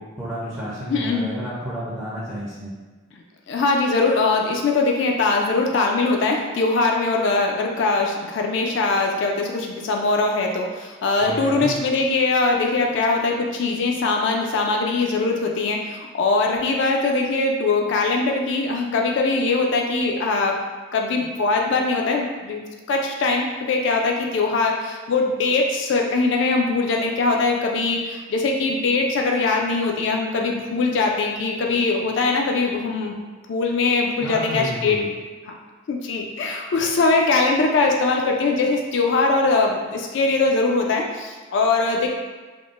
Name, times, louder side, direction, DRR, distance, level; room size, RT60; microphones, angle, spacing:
voice 1, 0.0-2.7 11.2-11.7 34.2-35.1, equal, 10° right, -10 dB, 0.4 m, -31 dB
voice 2, 0.9-1.3 3.1-20.6 20.9-22.6 22.9-33.2 33.5-35.0 35.9-42.1, left 3 dB, 55° left, 1 dB, 0.3 m, -21 dB
3.5 x 2.0 x 2.4 m, 1.3 s
head